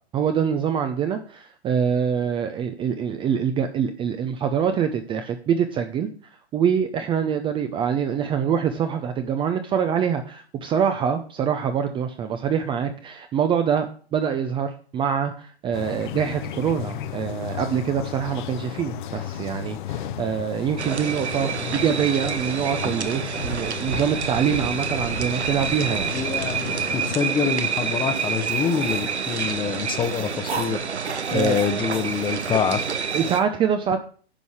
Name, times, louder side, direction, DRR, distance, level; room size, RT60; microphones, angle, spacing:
voice 1, 0.1-6.1 6.5-13.9 14.1-26.2 31.3-31.6 33.1-34.0, right 7 dB, 15° right, 7 dB, 0.6 m, -25 dB
sound 1, 15.7-27.2, left 10 dB, 45° left, 1.0 m, -34 dB
sound 2, 20.8-33.4, right 6 dB, 85° right, 1.0 m, -28 dB
voice 2, 26.1-26.6 26.9-30.8 31.3-32.8, left 7 dB, 15° left, 10 dB, 0.9 m, -25 dB
sound 3, 28.1-30.7 31.1-33.4, right 4 dB, 65° right, 2.9 m, -36 dB
10.0 x 5.5 x 6.4 m, 0.43 s
hypercardioid pair, 120°, 33 cm